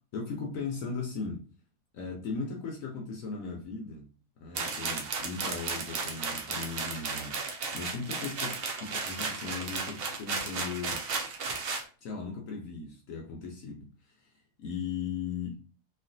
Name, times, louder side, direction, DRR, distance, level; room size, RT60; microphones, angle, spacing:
voice 1, 0.1-1.4 1.9-4.1 4.4-11.0 12.0-15.6, left 5 dB, 70° left, 1 dB, 1.0 m, -38 dB
sound 1, 4.6-11.9, right 4 dB, 65° right, 0.6 m, -34 dB
3.1 x 2.4 x 2.6 m, 0.37 s
omnidirectional pair, 1.6 m